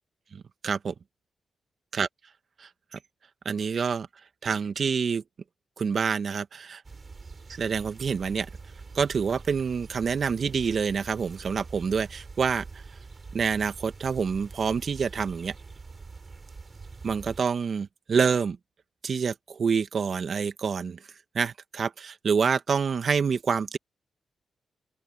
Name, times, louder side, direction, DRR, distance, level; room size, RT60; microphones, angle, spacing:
voice 1, 0.3-0.9 1.9-2.1 2.6-2.7 3.5-4.1 4.4-5.2 5.8-6.8 7.5-8.5 9.0-12.8 13.3-15.5 17.0-18.6 19.0-21.0 21.3-23.8, right 6 dB, 60° right, 1.8 m, -27 dB
sound 1, 6.8-17.4, right 4 dB, 45° right, 6.1 m, -44 dB
open air
supercardioid pair, 45°, 0 cm